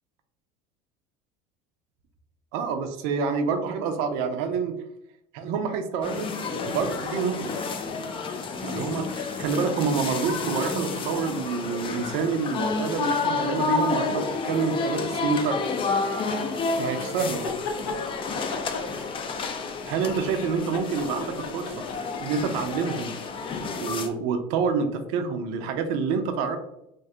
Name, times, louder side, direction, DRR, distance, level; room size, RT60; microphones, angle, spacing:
voice 1, 2.5-4.7 5.3-7.5 8.6-15.6 16.8-17.5 19.9-21.9 22.2-23.2 23.8-26.6, right 5 dB, 70° right, 7 dB, 0.5 m, -27 dB
sound 1, 6.0-24.1, left 4 dB, 30° left, 0.4 m, -30 dB
sound 2, 17.3-18.0 18.5-19.9 20.2-22.4, left 4 dB, 85° left, 0.7 m, -35 dB
2.6 x 2.2 x 3.6 m, 0.81 s
supercardioid pair, 100°, 17 cm